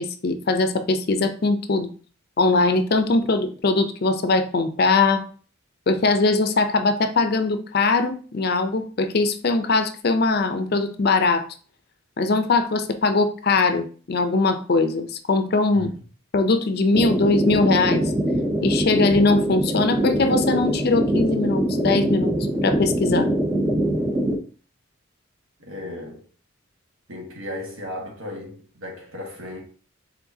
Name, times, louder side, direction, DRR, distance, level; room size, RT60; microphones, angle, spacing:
voice 1, 0.0-1.9 2.4-5.2 5.9-11.4 12.2-15.9 16.3-18.1 18.6-22.3 22.6-23.3, left 3 dB, 45° left, 0.4 m, -21 dB
sound 1, 16.9-24.4, right 1 dB, 15° right, 0.5 m, -23 dB
voice 2, 25.6-26.2 27.1-29.6, left 1 dB, 80° right, 1.4 m, -35 dB
4.6 x 3.7 x 2.7 m
head